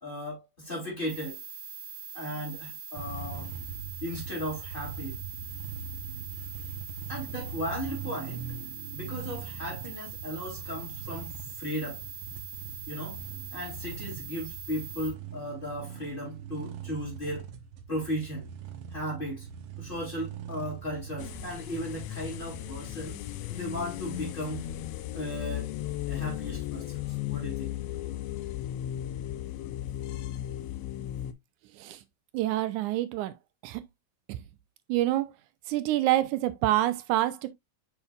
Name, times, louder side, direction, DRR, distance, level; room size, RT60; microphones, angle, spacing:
voice 1, 0.0-1.4 2.1-3.5 4.0-5.2 7.1-8.6 8.9-12.0 12.9-13.2 13.5-17.5 17.9-18.5 18.9-19.5 19.8-23.2 23.5-24.7 25.1-25.7 26.1-28.2, equal, 15° left, 3.1 m, -36 dB
sound 1, 1.1-15.1, right 6 dB, 10° right, 3.9 m, -42 dB
sound 2, 3.0-22.7, right 7 dB, 65° right, 1.4 m, -42 dB
sound 3, 21.2-31.3, left 13 dB, 75° left, 1.5 m, -36 dB
voice 2, 32.3-33.3 33.6-33.8 34.3-34.4 34.9-35.3 35.7-37.5, right 14 dB, 85° right, 2.1 m, -27 dB
7.0 x 5.8 x 2.4 m
omnidirectional pair, 3.5 m